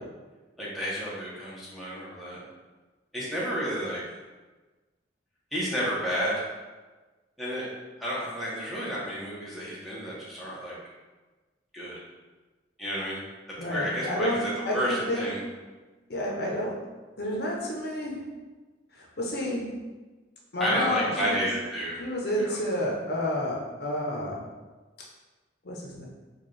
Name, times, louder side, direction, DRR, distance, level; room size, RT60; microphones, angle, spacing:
voice 1, 0.6-2.4 3.1-4.0 5.5-6.5 7.4-7.7 8.0-10.7 11.7-11.9 12.8-13.2 13.6-15.4 20.6-22.1 22.4-22.6, equal, ahead, -8 dB, 0.8 m, -31 dB
voice 2, 13.6-15.3 16.1-16.7 17.2-18.2 19.0-19.7 20.5-21.5 22.0-24.4 25.6-26.1, left 1 dB, 55° left, -2 dB, 0.6 m, -30 dB
4.3 x 2.3 x 3.1 m, 1.3 s
head